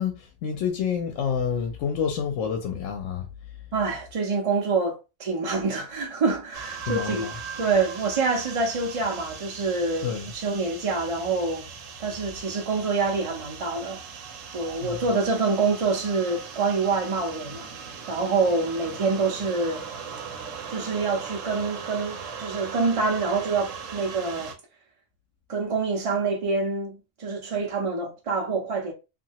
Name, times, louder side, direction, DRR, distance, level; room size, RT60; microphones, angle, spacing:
voice 1, 0.0-3.3 6.8-7.3 10.0-10.3 14.8-15.0, left 7 dB, 80° left, 0.9 m, -28 dB
voice 2, 3.7-7.3 7.6-11.7 12.0-14.0 14.5-17.7 18.1-19.8 20.7-24.5 25.5-28.9, right 4 dB, 45° right, 0.4 m, -26 dB
sound 1, 6.5-24.5, right 6 dB, 85° right, 1.0 m, -39 dB
2.7 x 2.5 x 2.8 m
omnidirectional pair, 1.3 m